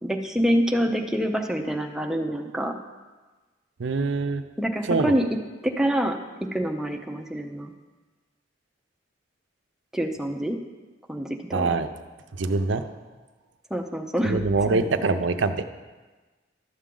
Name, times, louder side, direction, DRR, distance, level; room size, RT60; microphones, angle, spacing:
voice 1, 0.0-2.7 4.6-5.3 5.6-6.2 6.5-7.7 9.9-10.6 11.1-11.7 13.7-14.9, equal, 5° right, 2 dB, 0.6 m, -26 dB
voice 2, 3.8-4.4 4.9-5.1 11.5-11.9 12.4-12.8 14.2-15.6, right 3 dB, 70° right, 9 dB, 0.5 m, -24 dB
12.0 x 7.2 x 3.8 m, 1.3 s
head